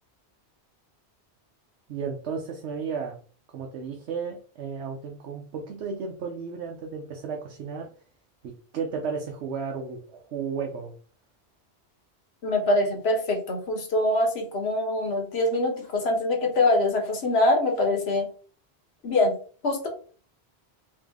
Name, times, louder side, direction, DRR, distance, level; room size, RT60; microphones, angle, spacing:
voice 1, 1.9-3.2 3.5-7.9 8.4-10.9, right 5 dB, 90° right, 1 dB, 0.9 m, -33 dB
voice 2, 12.4-18.3 19.0-19.3 19.6-19.9, left 2 dB, 70° left, 3 dB, 1.3 m, -24 dB
3.6 x 3.0 x 3.5 m, 0.41 s
omnidirectional pair, 1.1 m